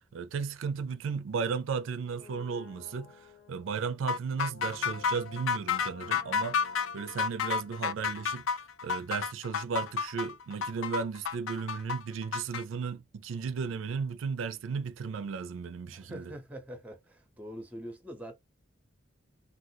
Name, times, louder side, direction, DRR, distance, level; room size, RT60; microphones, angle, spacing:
voice 1, 0.1-6.6 6.9-16.3, right 5 dB, 80° right, 0.4 m, -35 dB
Brass instrument, 2.0-8.9 9.1-9.2, left 4 dB, 60° left, 1.0 m, -51 dB
sound 1, 4.1-12.6, left 6 dB, 80° left, 0.4 m, -31 dB
voice 2, 15.9-18.4, equal, 10° right, 0.6 m, -44 dB
3.5 x 2.3 x 2.7 m
head